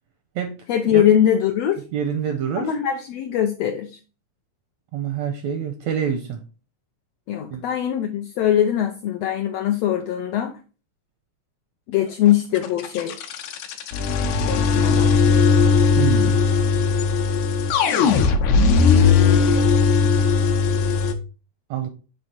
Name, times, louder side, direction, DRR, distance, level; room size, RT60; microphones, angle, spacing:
voice 1, 0.7-1.8 2.6-4.0 7.3-10.5 11.9-13.2 14.5-15.1, left 10 dB, 90° left, 1.4 m, -21 dB
voice 2, 1.9-2.7 4.9-6.4 7.5-7.6 16.0-16.4 21.7-21.9, right 8 dB, 80° right, 1.6 m, -26 dB
sound 1, 12.6-21.1, left 5 dB, 75° left, 1.9 m, -18 dB
7.7 x 3.4 x 4.1 m
omnidirectional pair, 3.7 m